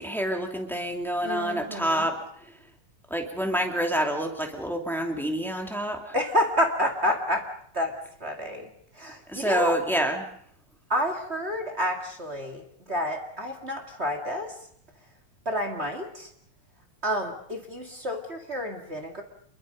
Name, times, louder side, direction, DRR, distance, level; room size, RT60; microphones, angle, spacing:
voice 1, 0.0-2.2 3.1-6.1 9.3-10.3, right 1 dB, ahead, 3 dB, 2.4 m, -27 dB
voice 2, 1.2-2.1 6.1-7.5 7.7-7.9 8.2-9.8 10.9-14.6 15.5-16.3 17.0-19.2, equal, 25° right, 4 dB, 2.1 m, -29 dB
28.0 x 22.5 x 5.3 m, 0.65 s
omnidirectional pair, 3.3 m